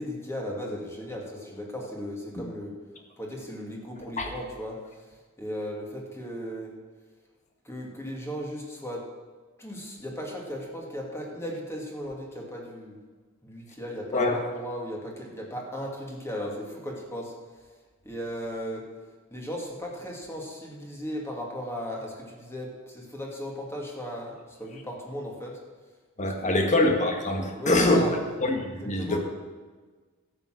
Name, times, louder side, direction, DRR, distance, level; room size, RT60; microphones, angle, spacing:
voice 1, 0.0-2.7 3.2-5.0 5.4-6.7 7.6-9.0 9.6-13.0 13.4-17.6 18.0-18.8 19.3-25.6 26.2-26.8 27.5-28.1 28.8-29.2, equal, 10° left, -2 dB, 2.3 m, -36 dB
voice 2, 26.2-28.0 28.4-29.2, left 1 dB, 35° left, 3 dB, 1.5 m, -24 dB
12.5 x 8.3 x 6.4 m, 1.4 s
head